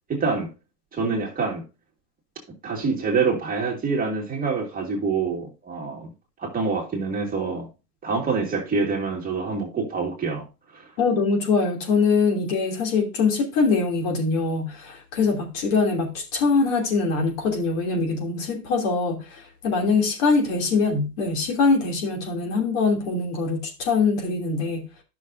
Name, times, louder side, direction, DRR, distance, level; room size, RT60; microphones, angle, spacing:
voice 1, 0.1-0.5 0.9-1.6 2.6-6.1 6.4-7.7 8.0-10.5 10.7-10.9, right 4 dB, 15° right, 2.3 m, -26 dB
voice 2, 11.0-24.9, left 4 dB, 50° left, 3.0 m, -23 dB
11.5 x 6.3 x 2.6 m
hypercardioid pair, 125°, 49 cm